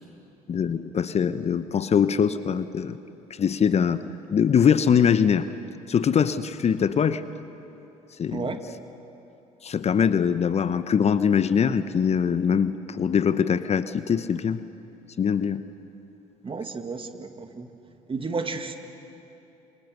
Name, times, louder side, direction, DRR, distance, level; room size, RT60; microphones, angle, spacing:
voice 1, 0.5-3.0 3.3-4.0 4.3-5.5 5.9-7.2 8.2-8.5 9.6-14.6 15.2-15.6, left 7 dB, 35° left, 13 dB, 0.9 m, -22 dB
voice 2, 8.3-8.6 16.4-17.7 18.1-18.8, right 4 dB, 30° right, 6 dB, 2.2 m, -32 dB
27.5 x 26.0 x 6.7 m, 2.9 s
hypercardioid pair, 60°, 18 cm